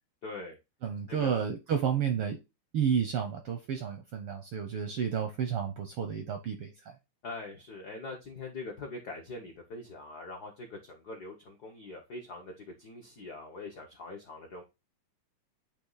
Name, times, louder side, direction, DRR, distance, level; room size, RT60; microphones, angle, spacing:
voice 1, 0.2-0.6 1.1-1.3 7.2-14.6, left 3 dB, 75° left, 0.9 m, -43 dB
voice 2, 0.8-2.4 2.7-7.0, right 7 dB, 75° right, 1.3 m, -31 dB
8.6 x 3.0 x 3.9 m
omnidirectional pair, 3.4 m